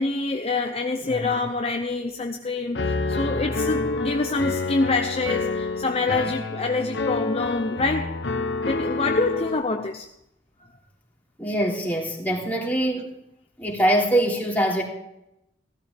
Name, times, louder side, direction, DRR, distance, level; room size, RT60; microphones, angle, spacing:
voice 1, 0.0-8.2 8.6-10.1, left 3 dB, 35° left, 0.7 m, -26 dB
Piano, 2.7-9.6, left 3 dB, 65° left, 1.0 m, -28 dB
voice 2, 11.4-13.1 13.6-14.8, right 1 dB, 10° left, 3.4 m, -23 dB
16.5 x 13.0 x 3.5 m
head